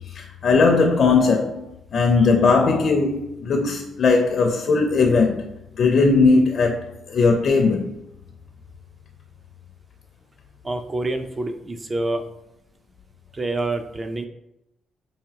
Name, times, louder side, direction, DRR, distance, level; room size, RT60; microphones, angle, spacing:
voice 1, 0.1-1.6 1.9-5.5 5.8-7.9, left 4 dB, 55° left, 0.5 m, -18 dB
voice 2, 10.6-12.2 13.3-14.3, right 2 dB, 25° right, 0.5 m, -27 dB
4.9 x 2.7 x 2.8 m
cardioid pair, 90°, 0 cm